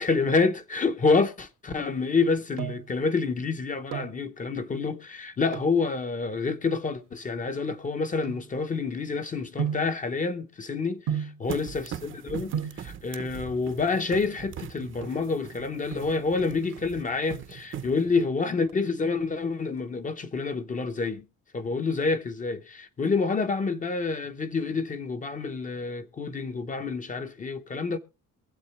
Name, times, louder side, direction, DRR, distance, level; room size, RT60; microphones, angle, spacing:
voice 1, 0.0-21.2 21.5-28.0, left 4 dB, 25° left, 0.7 m, -28 dB
sound 1, 2.2-3.0 3.7-4.2 5.5-5.8 6.6-9.0 9.6-10.0 11.1-11.5 12.2-12.3 12.5-12.9 14.0-14.5 14.8-14.9 15.1-15.3 15.7-16.1 16.4-17.4 17.8-18.3 18.6-19.8 20.1-20.2, right 9 dB, 85° right, 1.9 m, -35 dB
sound 2, 11.5-18.3, right 9 dB, 40° right, 0.7 m, -40 dB
22.5 x 7.9 x 3.1 m
cardioid pair, 180°, 32 cm